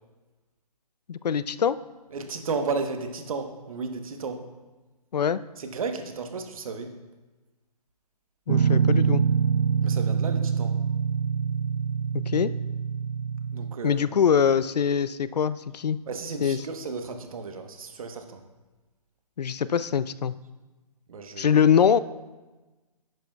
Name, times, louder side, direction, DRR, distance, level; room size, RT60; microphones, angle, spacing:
voice 1, 1.1-1.8 5.1-5.4 8.5-9.2 12.3-12.5 13.8-16.0 16.4-16.6 19.4-20.3 21.4-22.0, left 7 dB, 85° left, 16 dB, 0.4 m, -23 dB
voice 2, 2.1-4.5 5.6-6.9 9.8-10.8 13.5-14.3 16.1-18.4 21.1-21.6, right 4 dB, 60° right, 6 dB, 1.0 m, -33 dB
Guitar, 8.5-13.7, right 7 dB, 80° right, 0.4 m, -25 dB
11.0 x 9.1 x 2.3 m, 1.2 s
hypercardioid pair, 145°, 20 cm